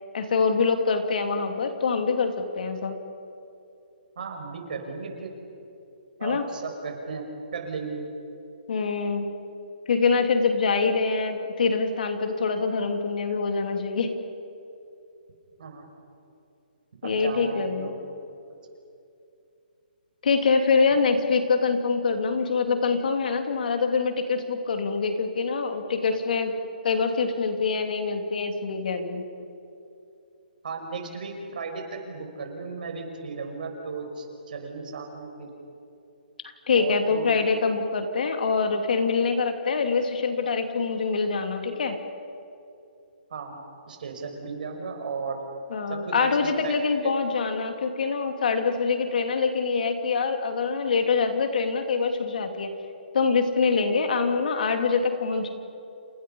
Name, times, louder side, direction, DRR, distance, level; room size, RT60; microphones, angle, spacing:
voice 1, 0.1-3.0 6.2-6.4 8.7-9.3 9.9-14.1 17.0-17.9 20.2-26.5 26.8-29.2 36.7-42.0 45.7-52.8 53.1-55.5, left 4 dB, 60° left, 5 dB, 2.9 m, -25 dB
voice 2, 4.2-5.3 6.2-7.2 7.5-8.1 15.6-15.9 17.0-18.0 30.6-35.5 36.7-37.4 43.3-43.6 43.9-45.4 45.9-46.7 47.0-47.1, right 4 dB, 60° right, 3 dB, 5.8 m, -35 dB
29.5 x 28.5 x 5.5 m, 2.7 s
hypercardioid pair, 160°, 5 cm